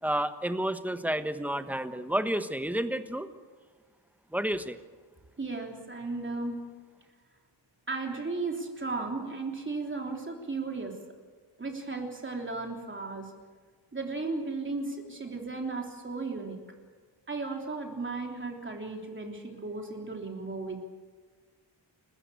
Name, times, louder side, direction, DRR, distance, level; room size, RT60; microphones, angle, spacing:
voice 1, 0.0-3.3 4.3-4.8, right 1 dB, 5° right, 9 dB, 1.2 m, -30 dB
voice 2, 5.4-6.6 7.9-11.0 11.6-13.3 13.9-16.6 17.3-20.8, right 3 dB, 25° right, 2 dB, 3.3 m, -35 dB
30.0 x 14.5 x 8.3 m, 1.5 s
wide cardioid pair, 145°, 46 cm